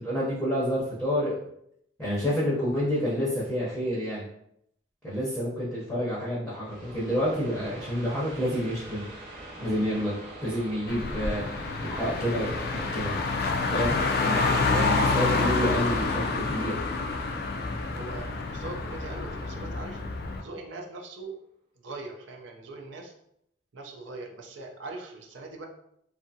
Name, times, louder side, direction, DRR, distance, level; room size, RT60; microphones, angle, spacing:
voice 1, 0.0-1.4 2.0-4.2 5.0-9.0 9.6-10.1 10.4-13.1 13.7-16.8, equal, 5° left, -8 dB, 0.6 m, -29 dB
sound 1, 6.6-20.0, right 1 dB, 30° right, 0.8 m, -45 dB
Car, 10.9-20.4, left 3 dB, 55° left, 0.3 m, -28 dB
voice 2, 17.9-20.0 20.4-21.3 21.8-23.1 23.7-25.7, right 2 dB, 85° right, 2 dB, 0.5 m, -41 dB
2.7 x 2.5 x 2.6 m, 0.74 s
head